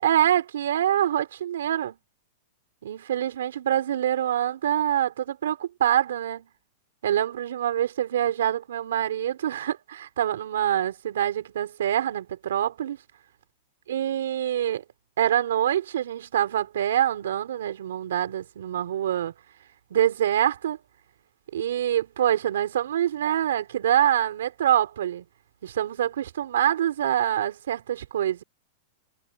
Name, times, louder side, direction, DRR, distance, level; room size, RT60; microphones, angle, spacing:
voice 1, 0.0-2.0 2.8-6.5 7.0-13.0 13.9-14.8 15.2-19.3 19.9-20.8 21.5-25.2 25.6-28.4, right 11 dB, 85° right, 4.4 m, -25 dB
hypercardioid pair, 135°, 0 cm